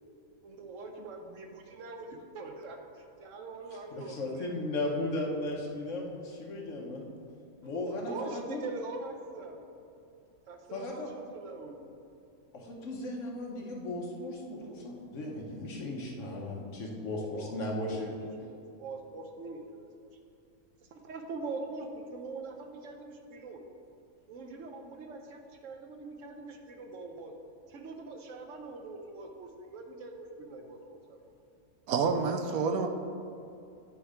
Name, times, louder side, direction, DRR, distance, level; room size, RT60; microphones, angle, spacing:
voice 1, 0.4-5.0 7.8-9.6 10.5-11.9 17.2-17.6 17.9-19.9 20.9-23.6 24.3-27.3 27.7-31.2, right 3 dB, 65° right, 3 dB, 0.9 m, -43 dB
voice 2, 3.9-7.1 7.6-8.6 10.7-11.1 12.5-18.1, left 2 dB, 60° left, -1 dB, 1.2 m, -36 dB
voice 3, 31.9-32.9, right 5 dB, 85° right, 6 dB, 1.1 m, -28 dB
9.1 x 3.2 x 4.9 m, 2.6 s
omnidirectional pair, 1.5 m